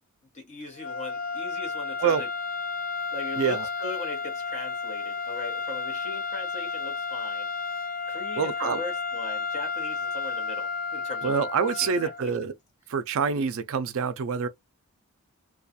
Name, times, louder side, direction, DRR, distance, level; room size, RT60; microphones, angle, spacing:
voice 1, 0.3-2.3 3.1-7.5 8.1-11.3 11.8-12.3, left 2 dB, 30° left, 1.0 m, -39 dB
sound 1, 0.8-12.3, left 4 dB, 85° left, 0.8 m, -32 dB
voice 2, 3.4-3.7 8.4-8.8 11.2-12.5 12.9-14.5, right 6 dB, 65° right, 0.4 m, -26 dB
2.3 x 2.3 x 2.6 m
head